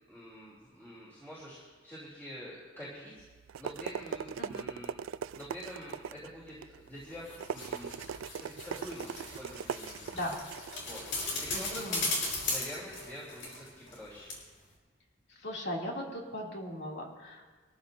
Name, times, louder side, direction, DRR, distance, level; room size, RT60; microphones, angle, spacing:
voice 1, 0.1-1.6 1.8-3.1 3.6-5.0 5.3-7.9 8.4-10.1 10.8-14.3, equal, 10° left, -8 dB, 3.1 m, -46 dB
sound 1, 3.2-12.0, right 7 dB, 80° right, 0.3 m, -41 dB
sound 2, 7.0-14.0 14.3-14.4, left 2 dB, 75° left, 4.3 m, -37 dB
voice 2, 11.5-12.1 15.4-17.4, equal, 60° left, -2 dB, 2.7 m, -38 dB
22.5 x 14.0 x 2.7 m, 1.4 s
head